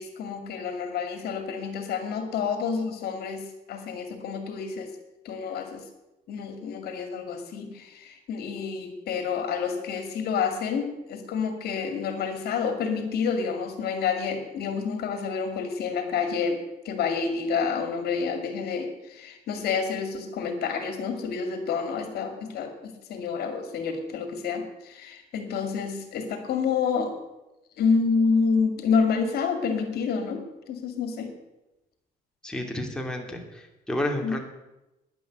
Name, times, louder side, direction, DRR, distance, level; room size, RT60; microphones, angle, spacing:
voice 1, 0.0-4.9 5.2-5.9 6.3-27.2 27.8-31.3 34.2-34.4, left 5 dB, 70° left, 7 dB, 2.3 m, -28 dB
voice 2, 32.4-34.4, left 1 dB, 5° left, 2 dB, 2.7 m, -31 dB
10.5 x 10.5 x 8.0 m, 0.97 s
cardioid pair, 110°, 17 cm